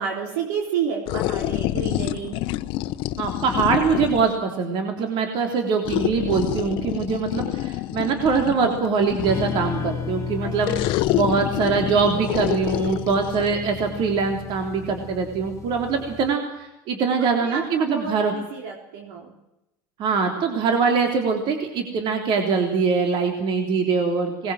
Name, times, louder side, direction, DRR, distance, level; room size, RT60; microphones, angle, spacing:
voice 1, 0.0-2.4 10.4-10.5 17.4-19.3, right 7 dB, 75° right, 1 dB, 4.0 m, -30 dB
sound 1, 1.1-4.4 5.8-9.7 10.6-13.6, left 16 dB, 60° left, 1.0 m, -27 dB
voice 2, 3.2-18.3 20.0-24.5, right 5 dB, 50° right, 4 dB, 3.4 m, -23 dB
sound 2, 9.3-16.3, left 7 dB, 30° left, 1.4 m, -33 dB
21.0 x 20.0 x 7.7 m, 0.90 s
supercardioid pair, 100°, 10 cm